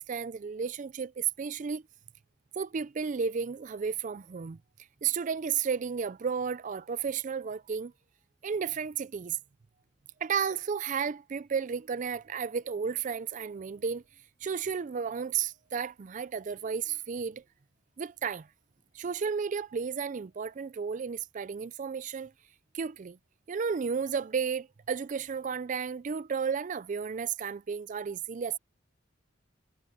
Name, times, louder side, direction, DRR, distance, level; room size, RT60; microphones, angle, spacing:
voice 1, 0.0-1.8 2.6-4.6 5.0-7.9 8.4-9.4 10.2-14.0 14.4-17.4 18.0-18.5 18.9-22.3 22.7-23.2 23.5-28.6, right 6 dB, 40° right, 0.4 m, -33 dB
head